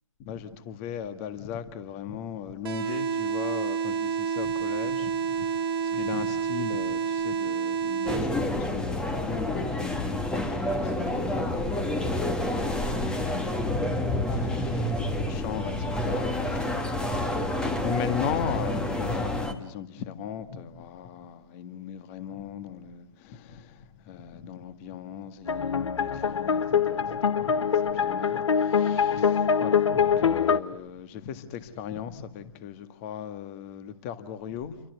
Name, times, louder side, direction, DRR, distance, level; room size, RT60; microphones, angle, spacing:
voice 1, 0.2-16.9 17.2-34.8, left 9 dB, 25° left, 1.8 m, -38 dB
sound 1, 2.6-8.6, right 7 dB, 45° right, 2.2 m, -29 dB
sound 2, 8.1-19.5, left 1 dB, 5° left, 1.4 m, -28 dB
sound 3, 25.5-30.6, left 7 dB, 60° left, 1.4 m, -24 dB
29.5 x 24.0 x 8.2 m
figure-of-eight pair, 140°, 17 cm